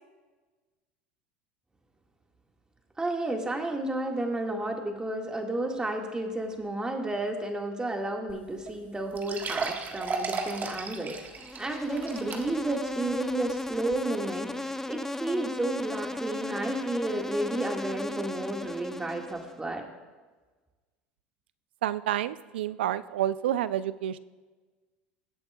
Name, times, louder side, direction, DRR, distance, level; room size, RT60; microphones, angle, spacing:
voice 1, 3.0-19.8, right 2 dB, 15° right, 2 dB, 1.7 m, -32 dB
sound 1, 8.3-8.4 8.7-8.8 9.1-12.8 13.2-13.3 13.9-14.0, right 4 dB, 35° right, 1.4 m, -35 dB
Insect, 11.4-19.6, left 1 dB, 5° left, 0.5 m, -36 dB
voice 2, 21.8-24.2, right 12 dB, 85° right, 16 dB, 0.4 m, -29 dB
21.0 x 8.3 x 2.3 m, 1.3 s
hypercardioid pair, 85°, 6 cm